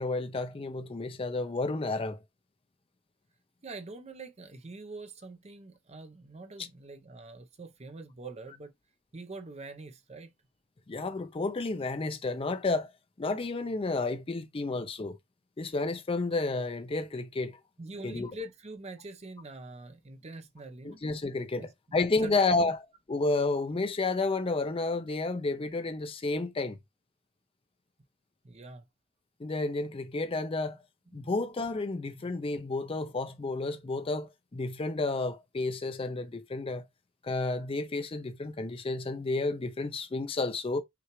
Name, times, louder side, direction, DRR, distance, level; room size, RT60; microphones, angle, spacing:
voice 1, 0.0-2.2 10.9-12.9 13.2-15.2 15.6-17.6 18.0-18.3 20.8-22.8 23.1-26.8 29.4-30.8 31.1-36.9 37.2-40.8, left 3 dB, 25° left, 0.4 m, -31 dB
voice 2, 3.6-8.7 9.1-10.3 17.8-21.0 21.6-22.7 28.4-28.9 31.1-31.3, right 2 dB, 30° right, 0.6 m, -45 dB
5.8 x 2.4 x 3.0 m
head